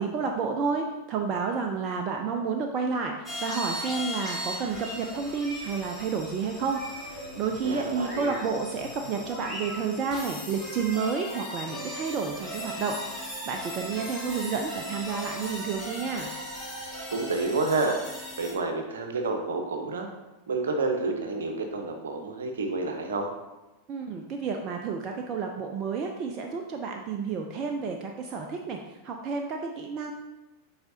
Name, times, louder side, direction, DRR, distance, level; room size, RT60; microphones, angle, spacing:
voice 1, 0.0-6.8 7.1-13.0 13.5-16.3 23.9-28.8 29.0-30.1, right 5 dB, 35° right, 2 dB, 0.5 m, -30 dB
sound 1, 3.3-18.5, equal, 5° left, 1.9 m, -38 dB
voice 2, 7.6-8.3 17.1-20.1 20.5-23.3, right 3 dB, 65° right, 4 dB, 0.9 m, -29 dB
7.8 x 4.9 x 2.8 m, 1.1 s
figure-of-eight pair, 90°, 0 cm